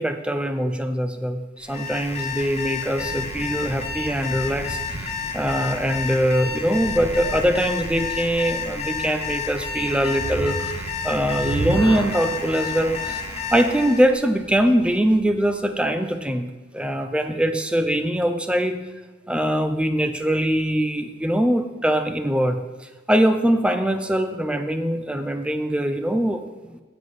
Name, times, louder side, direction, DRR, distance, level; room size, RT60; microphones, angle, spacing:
voice 1, 0.0-13.2 13.5-18.8 19.3-22.6 23.1-26.8, equal, 5° right, 7 dB, 0.5 m, -22 dB
Alarm, 1.6-14.1, left 5 dB, 35° left, 1.0 m, -31 dB
sound 1, 3.0-11.4, right 1 dB, 45° right, 0.6 m, -38 dB
sound 2, 10.1-15.4, right 2 dB, 85° right, 0.9 m, -32 dB
8.0 x 7.2 x 4.9 m, 1.3 s
head